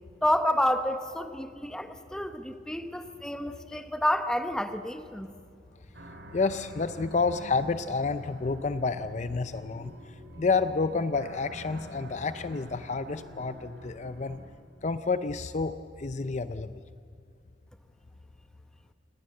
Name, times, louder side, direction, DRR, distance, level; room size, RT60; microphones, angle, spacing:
voice 1, 0.2-5.3, left 1 dB, 5° left, 8 dB, 1.1 m, -29 dB
sound 1, 5.9-14.5, equal, 65° right, 3.6 m, -47 dB
voice 2, 6.3-9.9 10.4-14.4 14.8-16.7, left 4 dB, 40° left, 12 dB, 0.5 m, -29 dB
27.5 x 19.5 x 7.8 m, 2.3 s
head